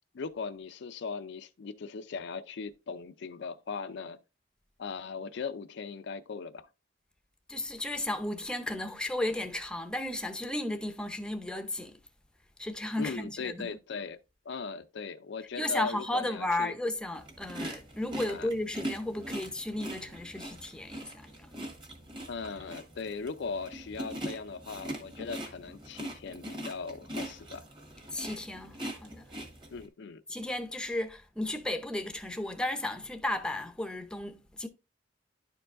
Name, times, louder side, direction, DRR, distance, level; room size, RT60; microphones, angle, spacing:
voice 1, 0.1-4.2 4.8-6.7 13.0-14.2 14.5-16.7 18.3-18.5 22.3-27.6 29.7-30.2, left 5 dB, 65° left, 0.4 m, -39 dB
voice 2, 7.5-12.0 12.6-13.7 15.6-21.5 28.1-29.3 30.3-34.7, left 1 dB, 5° left, 0.7 m, -34 dB
sound 1, 17.1-29.9, equal, 25° right, 1.6 m, -42 dB
10.5 x 4.6 x 2.5 m
head